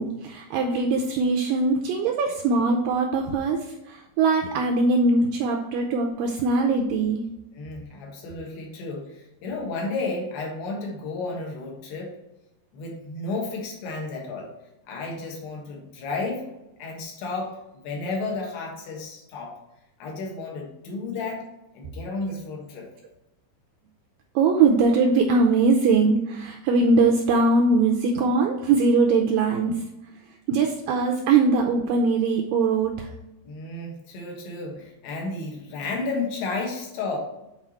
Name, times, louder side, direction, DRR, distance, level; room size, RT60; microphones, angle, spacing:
voice 1, 0.0-7.2 24.4-29.8 30.5-33.1, right 3 dB, 85° right, 2 dB, 2.0 m, -21 dB
voice 2, 7.5-12.2 12.7-14.5 14.9-16.5 16.8-19.6 20.0-21.5 21.7-22.9 33.4-37.2, left 3 dB, 85° left, 0 dB, 3.6 m, -32 dB
9.2 x 4.1 x 3.0 m, 0.92 s
omnidirectional pair, 4.6 m